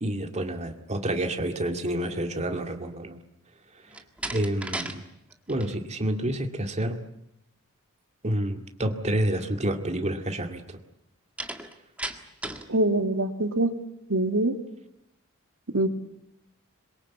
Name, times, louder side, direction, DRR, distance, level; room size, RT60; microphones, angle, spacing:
voice 1, 0.0-3.2 4.3-5.0 5.5-7.0 8.2-10.8, right 1 dB, 30° right, 5 dB, 2.2 m, -29 dB
Slam, 3.9-5.0 5.3-5.8 11.4-12.7, right 1 dB, 5° right, 1.8 m, -35 dB
voice 2, 12.7-13.7 14.1-14.6 15.7-15.9, right 1 dB, 65° right, 7 dB, 2.2 m, -24 dB
26.0 x 23.0 x 8.5 m, 0.81 s
head